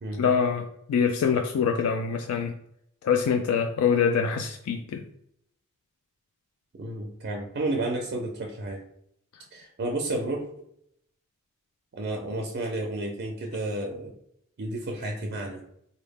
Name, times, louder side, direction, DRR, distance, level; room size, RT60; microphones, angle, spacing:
voice 1, 0.2-2.5 3.0-5.0, left 6 dB, 85° left, 6 dB, 0.3 m, -25 dB
voice 2, 6.7-8.8 9.5-10.5 11.9-14.1 14.6-15.6, right 2 dB, 50° right, 2 dB, 0.4 m, -31 dB
4.0 x 2.1 x 3.4 m, 0.72 s
head